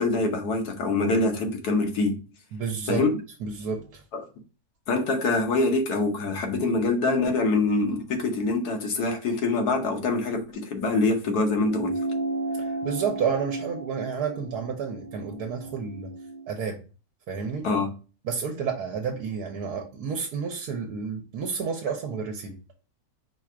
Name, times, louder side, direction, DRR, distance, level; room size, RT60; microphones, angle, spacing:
voice 1, 0.0-2.2 2.9-3.2 4.1-4.2 4.9-12.0 17.6-17.9, left 3 dB, 85° left, 1.5 m, -25 dB
voice 2, 2.5-3.0 3.4-4.0 12.8-16.1 16.5-16.8 17.3-17.7 18.2-22.5, right 6 dB, 80° right, 1.3 m, -30 dB
sound 1, 11.7-16.5, right 2 dB, 45° left, 0.5 m, -33 dB
4.7 x 2.5 x 4.4 m
omnidirectional pair, 1.7 m